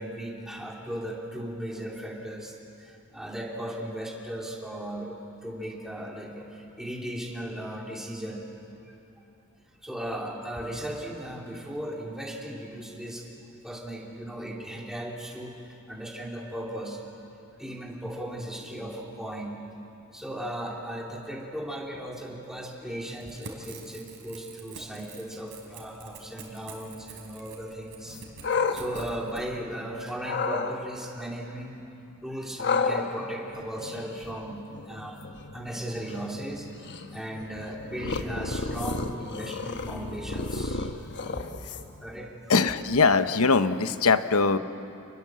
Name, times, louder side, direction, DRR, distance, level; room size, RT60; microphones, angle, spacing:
voice 1, 0.0-8.5 8.8-9.0 9.8-13.3 13.6-17.0 17.6-19.6 20.1-28.2 28.7-31.9 32.2-35.2 35.5-40.9 41.3-41.5 42.0-42.3, right 1 dB, ahead, -2 dB, 3.2 m, -37 dB
Crackle / Tearing, 23.1-29.4, right 4 dB, 60° right, 3.8 m, -46 dB
sound 1, 28.1-29.8 30.2-30.7 32.6-42.1, left 4 dB, 55° left, 1.2 m, -33 dB
voice 2, 42.5-44.6, left 4 dB, 75° left, 11 dB, 0.9 m, -21 dB
29.0 x 20.5 x 7.6 m, 2.8 s
head